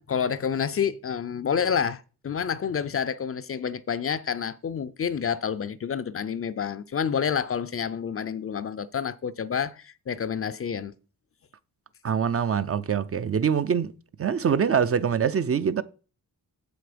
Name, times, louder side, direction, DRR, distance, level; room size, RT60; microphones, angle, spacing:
voice 1, 0.0-10.9, left 7 dB, 40° left, 0.4 m, -29 dB
voice 2, 12.0-13.9 14.2-15.8, right 7 dB, 40° right, 0.4 m, -24 dB
7.9 x 7.5 x 5.0 m
wide cardioid pair, 170°, 37 cm